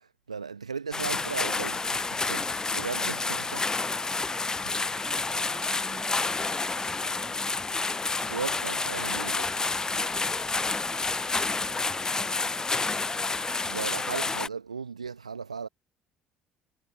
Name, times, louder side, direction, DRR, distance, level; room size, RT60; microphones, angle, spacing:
voice 1, 0.0-3.6 8.3-9.5 13.7-15.7, right 5 dB, 85° right, 1.5 m, -36 dB
sound 1, 0.9-14.5, left 3 dB, 20° left, 0.4 m, -29 dB
voice 2, 3.2-4.4 4.7-7.4 9.1-13.1, right 6 dB, 35° right, 7.7 m, -52 dB
figure-of-eight pair, 55°, 3 cm